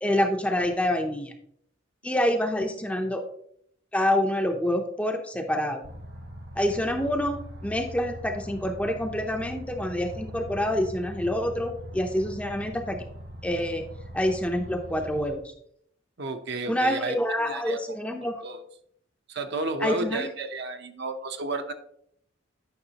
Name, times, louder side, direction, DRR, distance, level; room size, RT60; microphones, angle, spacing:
voice 1, 0.0-1.3 2.0-3.2 3.9-5.8 6.6-13.0 13.4-13.8 14.1-15.5 16.7-18.4 19.8-20.3, left 1 dB, 5° left, 4 dB, 0.5 m, -27 dB
sound 1, 5.8-15.3, equal, 85° right, 3.2 m, -41 dB
voice 2, 16.2-17.2 17.4-17.8 18.4-18.6 19.3-21.7, right 3 dB, 55° right, 7 dB, 0.7 m, -32 dB
9.6 x 5.8 x 2.8 m, 0.68 s
head